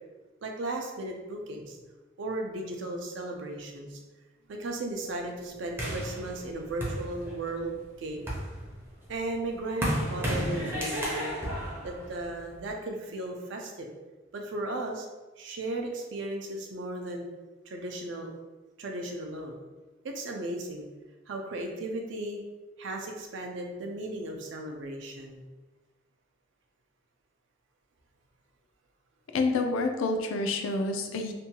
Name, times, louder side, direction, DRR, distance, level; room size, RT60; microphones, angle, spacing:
voice 1, 0.4-1.8 2.2-4.0 4.5-8.3 9.1-11.3 11.8-13.9 14.3-15.1 15.4-17.3 17.7-18.3 18.8-19.5 20.0-20.9 21.3-22.4 22.8-25.4, right 2 dB, 65° right, 2 dB, 0.4 m, -36 dB
sound 1, 5.8-7.6 8.1-12.7, equal, 10° right, 0.5 m, -33 dB
voice 2, 29.3-31.3, left 3 dB, 85° left, 5 dB, 0.4 m, -28 dB
2.6 x 2.2 x 2.8 m, 1.2 s
head